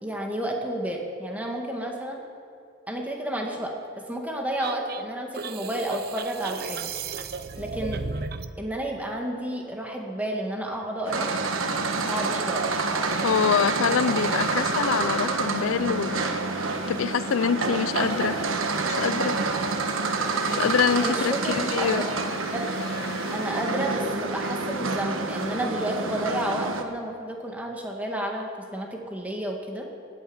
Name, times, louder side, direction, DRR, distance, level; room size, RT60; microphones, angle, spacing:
voice 1, 0.0-2.2 2.9-3.7 4.1-6.9 7.6-8.0 8.6-11.3 12.0-13.2 20.9-22.0 22.5-22.7 23.3-29.9, right 1 dB, 5° right, 0 dB, 1.9 m, -31 dB
sound 1, 4.6-8.5, right 4 dB, 50° right, 0.6 m, -34 dB
sound 2, 11.0-26.8, right 3 dB, 85° right, 1.3 m, -28 dB
sound 3, 12.6-24.1, left 3 dB, 55° left, 1.1 m, -43 dB
voice 2, 13.2-16.5 16.9-18.4 18.9-19.4 20.5-22.0, left 7 dB, 80° left, 16 dB, 0.4 m, -25 dB
19.0 x 9.0 x 8.0 m, 2.5 s
head